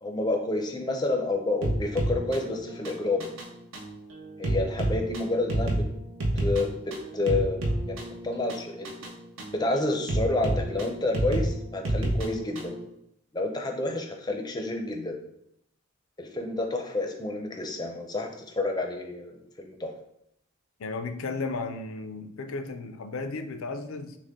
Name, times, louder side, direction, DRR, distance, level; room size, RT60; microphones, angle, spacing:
voice 1, 0.0-3.3 4.4-5.8 6.3-9.0 9.5-12.7 13.3-15.2 16.2-19.9, left 2 dB, 20° left, 3 dB, 0.5 m, -29 dB
sound 1, 1.6-12.8, right 1 dB, 65° right, 0.8 m, -30 dB
voice 2, 20.8-24.2, left 3 dB, 75° left, 8 dB, 0.5 m, -34 dB
6.3 x 2.1 x 3.6 m, 0.76 s
head